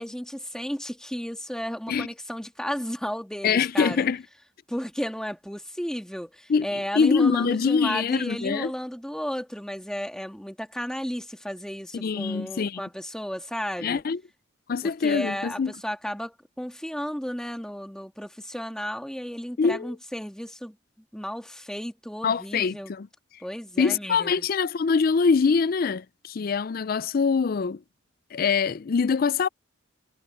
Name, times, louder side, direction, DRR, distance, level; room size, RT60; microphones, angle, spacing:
voice 1, 0.0-4.1 4.7-14.0 14.8-20.8 21.1-22.9 23.4-24.5, equal, 5° left, 1.8 m, -33 dB
voice 2, 3.4-4.2 6.5-6.7 6.9-8.7 11.9-12.8 13.8-14.2 14.7-15.7 19.6-19.9 22.2-23.1 23.8-27.8 28.3-29.5, left 5 dB, 45° left, 0.4 m, -24 dB
head